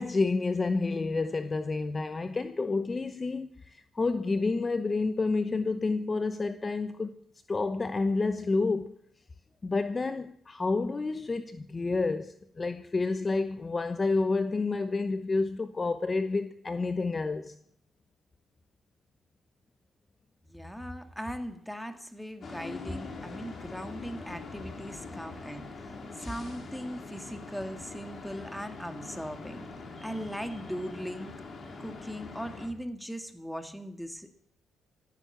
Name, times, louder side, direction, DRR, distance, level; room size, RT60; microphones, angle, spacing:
voice 1, 0.0-7.2 7.5-9.0 9.6-17.6, left 3 dB, 30° left, 0.9 m, -29 dB
voice 2, 20.5-29.7 30.0-31.4 31.7-34.3, equal, ahead, 2.1 m, -39 dB
sound 1, 22.4-32.7, left 3 dB, 45° left, 3.7 m, -43 dB
15.0 x 11.5 x 8.0 m
cardioid pair, 90°, 0 cm